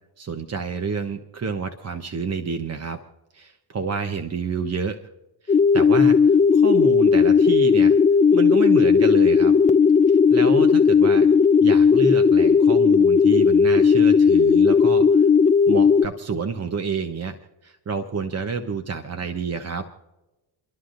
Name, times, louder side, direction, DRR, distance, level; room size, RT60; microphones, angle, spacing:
voice 1, 0.2-3.0 3.3-5.0 5.4-8.0 8.3-9.5 10.1-11.3 11.6-15.3 15.7-17.4 17.6-19.9, right 5 dB, 35° right, 7 dB, 0.9 m, -29 dB
sound 1, 5.5-16.1, left 6 dB, 15° left, 0.5 m, -16 dB
29.5 x 11.5 x 2.6 m, 1.1 s
supercardioid pair, 60°, 46 cm